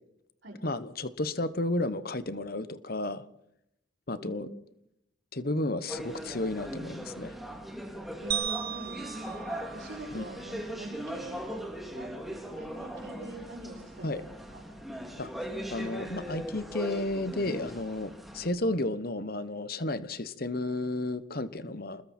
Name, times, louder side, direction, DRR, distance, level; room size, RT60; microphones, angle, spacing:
voice 1, 0.6-3.2 4.1-4.5 5.3-7.3 10.1-10.3 14.0-14.2 15.2-15.3 15.7-22.0, left 2 dB, 50° left, 13 dB, 1.2 m, -32 dB
voice 2, 4.1-4.5 8.2-11.4 11.9-12.1 12.6-14.6, right 1 dB, 70° right, -7 dB, 6.6 m, -44 dB
sound 1, 5.9-18.5, equal, ahead, 2.8 m, -40 dB
sound 2, 8.3-10.7, right 10 dB, 50° right, 1.5 m, -36 dB
28.0 x 21.0 x 4.5 m, 0.79 s
head